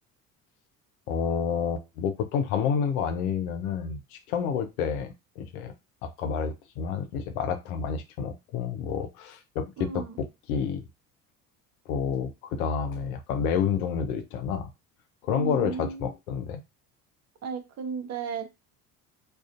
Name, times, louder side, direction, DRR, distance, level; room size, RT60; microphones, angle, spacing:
voice 1, 1.1-5.7 6.0-10.8 11.9-14.7 15.2-16.6, left 7 dB, 75° left, 7 dB, 0.6 m, -29 dB
voice 2, 9.8-10.2 15.3-16.1 17.4-18.5, right 6 dB, 35° right, 8 dB, 0.7 m, -34 dB
2.4 x 2.3 x 2.4 m, 0.24 s
hypercardioid pair, 60°, 45 cm